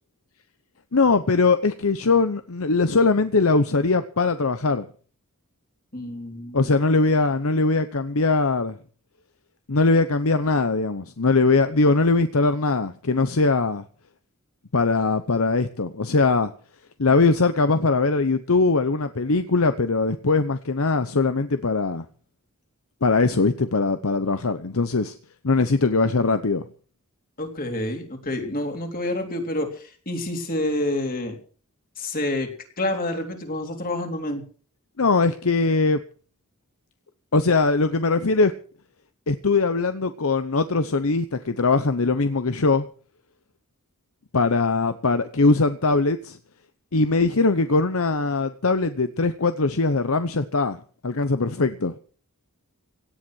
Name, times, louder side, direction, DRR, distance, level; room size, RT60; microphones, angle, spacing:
voice 1, 0.9-4.9 6.5-8.8 9.7-13.8 14.7-16.5 17.0-22.0 23.0-25.1 25.4-26.6 35.0-36.0 37.3-38.5 39.3-42.9 44.3-46.4 46.9-51.9, left 3 dB, 65° left, 11 dB, 0.9 m, -21 dB
voice 2, 5.9-6.7 27.4-31.4 32.0-32.5 32.8-34.4, left 1 dB, 40° left, 4 dB, 3.5 m, -28 dB
17.5 x 10.5 x 6.3 m, 0.43 s
head